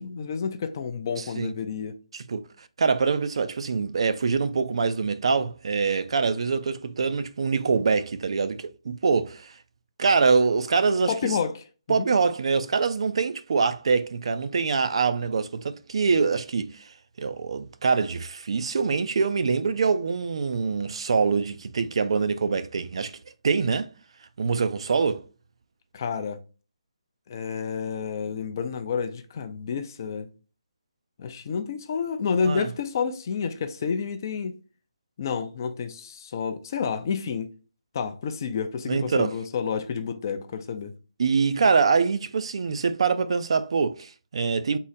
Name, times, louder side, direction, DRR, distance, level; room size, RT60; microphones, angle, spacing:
voice 1, 0.0-2.0 11.1-12.1 25.9-26.4 27.3-30.3 31.2-34.5 35.2-37.5 37.9-40.9, left 6 dB, 35° left, 0.5 m, -30 dB
voice 2, 2.1-2.5 2.8-9.5 10.0-11.1 11.9-16.8 17.2-23.2 23.4-23.9 24.4-25.2 32.5-32.7 38.9-39.3 41.2-44.8, right 5 dB, 55° right, 0.4 m, -24 dB
3.7 x 2.1 x 4.0 m
hypercardioid pair, 165°, 4 cm